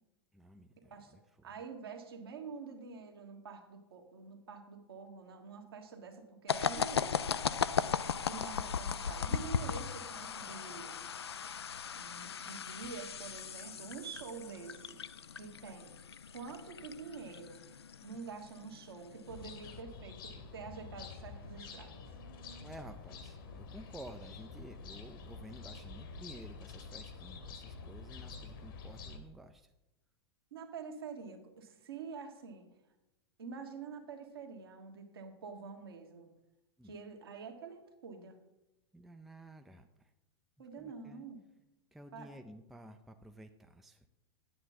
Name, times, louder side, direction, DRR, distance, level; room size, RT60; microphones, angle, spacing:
voice 1, 0.3-1.5 8.2-8.5 22.6-29.7 36.8-37.0 38.9-40.1 40.8-41.2 41.9-44.1, right 1 dB, ahead, 6 dB, 0.4 m, -53 dB
voice 2, 0.9-1.2 1.4-7.5 8.2-11.0 11.9-15.0 15.4-15.9 16.3-17.6 18.0-22.1 30.5-32.7 33.4-36.3 36.8-38.4 40.6-41.4 42.1-42.3, right 5 dB, 60° right, 3 dB, 1.5 m, -47 dB
sound 1, 6.5-19.8, left 7 dB, 75° left, 0.4 m, -38 dB
sound 2, 19.3-29.2, left 4 dB, 55° left, 1.3 m, -48 dB
9.9 x 7.8 x 4.0 m, 0.95 s
figure-of-eight pair, 95°, 14 cm